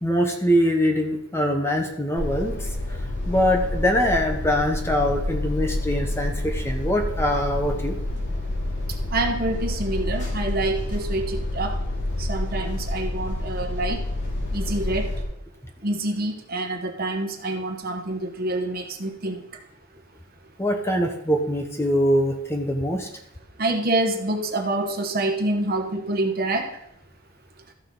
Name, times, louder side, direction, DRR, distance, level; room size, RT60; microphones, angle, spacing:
voice 1, 0.0-2.6 3.3-7.9 20.6-23.1, equal, 10° left, 4 dB, 0.8 m, -23 dB
sound 1, 2.1-15.2, left 1 dB, 55° left, 2.8 m, -28 dB
voice 2, 9.1-11.7 12.2-14.0 14.5-15.1 15.8-19.4 23.6-26.7, right 2 dB, 45° right, 4 dB, 1.1 m, -26 dB
13.5 x 6.4 x 3.8 m, 0.80 s
head